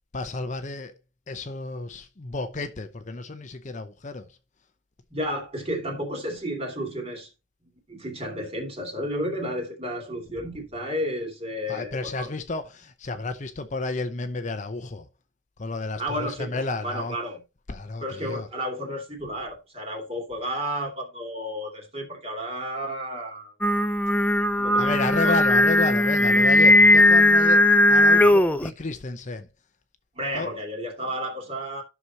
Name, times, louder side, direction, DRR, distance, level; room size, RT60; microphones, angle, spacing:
voice 1, 0.1-0.9 1.3-4.4 10.4-10.6 11.7-15.1 15.6-17.2 17.7-18.5 24.8-29.5 30.3-30.5, left 3 dB, 40° left, 0.7 m, -31 dB
voice 2, 5.1-7.3 7.9-12.3 16.0-17.4 18.0-23.5 24.6-25.3 30.1-31.8, equal, 30° right, 2.8 m, -32 dB
Singing, 23.6-28.7, left 1 dB, 10° left, 0.4 m, -18 dB
12.5 x 6.1 x 2.8 m
head